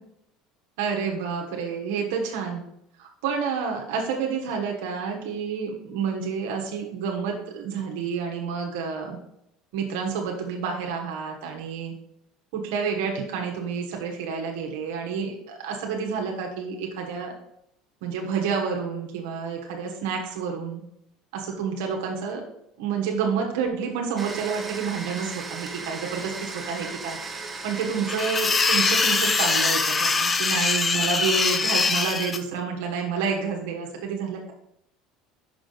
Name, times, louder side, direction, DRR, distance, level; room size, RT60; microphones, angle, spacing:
voice 1, 0.8-2.6 3.0-9.2 9.7-11.9 12.5-17.3 18.0-20.8 21.3-22.4 22.8-34.5, right 6 dB, 80° right, 1 dB, 1.1 m, -29 dB
Domestic sounds home sounds, 24.2-30.8, right 3 dB, 20° right, 0.8 m, -37 dB
sound 1, 28.1-32.4, left 4 dB, 25° left, 0.5 m, -23 dB
5.8 x 5.0 x 3.9 m, 0.78 s
supercardioid pair, 105°, 0 cm